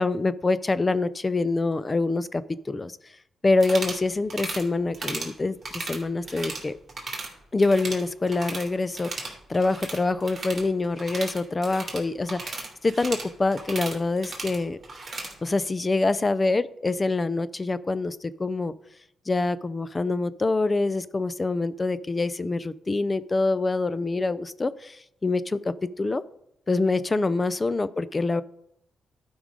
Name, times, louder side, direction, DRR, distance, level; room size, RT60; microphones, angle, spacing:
voice 1, 0.0-3.0 3.4-6.8 7.5-14.8 15.1-18.7 19.3-26.2 26.7-28.4, left 3 dB, 25° left, 16 dB, 0.4 m, -25 dB
sound 1, 3.5-4.0 4.3-4.6 4.9-5.3 5.6-6.6 6.9-7.3 7.6-8.7 8.9-15.3, right 3 dB, 35° right, 2.6 m, -35 dB
12.0 x 5.2 x 5.0 m, 0.76 s
cardioid pair, 90°, 0 cm